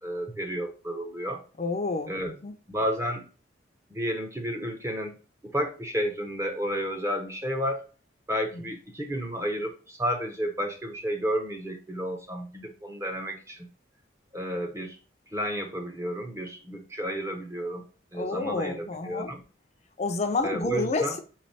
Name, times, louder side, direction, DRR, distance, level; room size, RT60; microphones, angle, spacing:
voice 1, 0.0-1.4 2.1-2.3 2.7-3.3 3.9-5.2 5.4-7.8 8.3-13.7 14.3-15.0 15.3-17.9 18.1-19.4 20.4-21.2, equal, 15° right, 0.6 m, -31 dB
voice 2, 1.6-2.5 8.5-8.6 18.1-19.3 20.0-21.2, left 3 dB, 35° left, 0.4 m, -29 dB
3.9 x 3.2 x 4.0 m
head